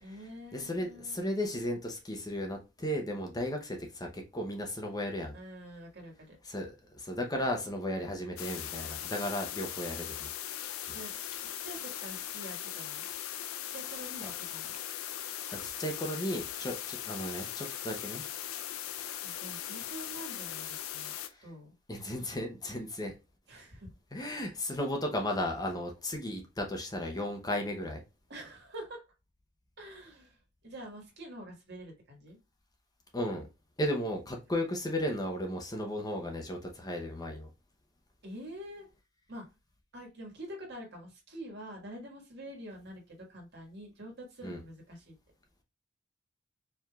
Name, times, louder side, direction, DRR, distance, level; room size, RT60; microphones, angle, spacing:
voice 1, 0.0-1.2 5.3-6.4 10.9-11.1 11.4-13.1 13.7-14.7 19.2-21.1 21.4-21.7 23.5-23.9 24.2-24.4 28.3-29.0 29.8-30.4 30.6-32.4 38.2-38.9 39.3-39.4 39.9-45.1, equal, 55° right, 1.7 m, -46 dB
voice 2, 0.5-5.3 6.4-10.3 14.2-14.3 15.5-18.2 21.2-21.4 21.9-23.1 24.1-28.0 33.1-33.5 33.8-37.5 44.4-44.6, left 1 dB, 20° left, 0.8 m, -35 dB
sound 1, 8.4-21.3, left 11 dB, 85° left, 0.5 m, -39 dB
4.6 x 3.5 x 2.3 m
head